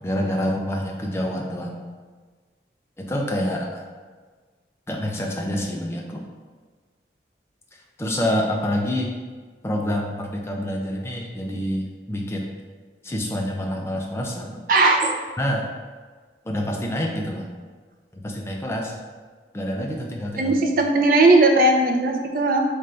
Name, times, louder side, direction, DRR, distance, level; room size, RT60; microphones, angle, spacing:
voice 1, 0.0-1.8 3.0-3.8 4.9-6.3 8.0-9.1 9.6-12.5 13.0-14.7 15.4-15.6 16.4-17.5 18.1-19.0 19.5-20.5, equal, 15° left, 0 dB, 0.4 m, -27 dB
voice 2, 14.7-15.2 20.4-22.6, right 2 dB, 50° right, 3 dB, 0.4 m, -18 dB
3.4 x 2.5 x 4.3 m, 1.5 s
head